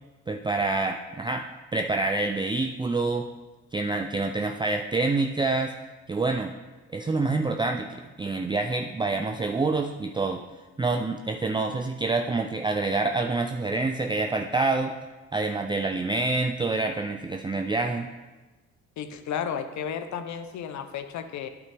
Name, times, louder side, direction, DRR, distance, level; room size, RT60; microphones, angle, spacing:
voice 1, 0.3-1.5 1.7-3.3 3.7-5.7 6.1-6.5 6.9-10.4 10.8-14.9 15.3-18.1, right 3 dB, 15° right, 4 dB, 0.4 m, -27 dB
voice 2, 19.0-21.5, left 8 dB, 70° left, 9 dB, 0.8 m, -33 dB
9.1 x 8.2 x 3.4 m, 1.2 s
cardioid pair, 90°, 30 cm